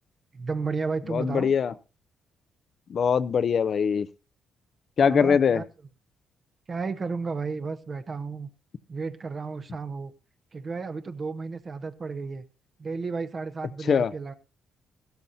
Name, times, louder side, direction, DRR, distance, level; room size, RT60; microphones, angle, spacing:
voice 1, 0.3-1.5 5.0-5.6 6.7-8.5 8.9-10.1 10.5-12.5 12.8-14.3, right 4 dB, 40° right, 1.0 m, -33 dB
voice 2, 1.1-1.7 2.9-4.1 5.0-5.6 13.9-14.1, left 6 dB, 50° left, 0.7 m, -22 dB
15.0 x 13.0 x 2.7 m
cardioid pair, 90°, 0 cm